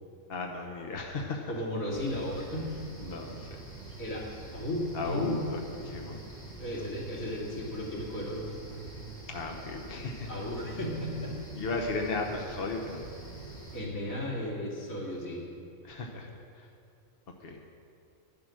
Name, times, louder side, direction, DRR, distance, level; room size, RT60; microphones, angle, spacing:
voice 1, 0.3-1.5 3.0-3.5 4.9-6.2 9.3-10.3 11.6-13.0 15.8-16.3 17.4-17.6, left 3 dB, 50° left, 2 dB, 1.1 m, -35 dB
voice 2, 1.5-2.7 4.0-4.3 4.5-5.4 6.6-8.5 10.3-11.3 13.7-15.5, left 1 dB, 80° left, -4 dB, 2.9 m, -34 dB
sound 1, 1.9-13.8, right 2 dB, 10° left, 2.7 m, -45 dB
10.5 x 10.5 x 6.3 m, 2.5 s
omnidirectional pair, 1.4 m